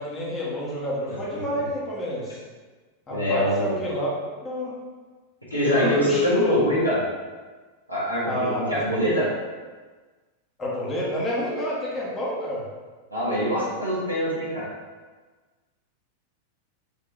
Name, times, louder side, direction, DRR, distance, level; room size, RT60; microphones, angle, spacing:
voice 1, 0.0-2.4 3.1-4.1 4.4-4.7 5.6-6.5 8.3-8.9 10.6-12.6, equal, 20° left, -6 dB, 1.1 m, -29 dB
voice 2, 3.1-3.7 5.5-7.0 7.9-8.3 8.7-9.3 13.1-14.6, equal, 90° left, -9 dB, 1.2 m, -23 dB
4.9 x 2.9 x 2.5 m, 1.4 s
figure-of-eight pair, 90°, 0 cm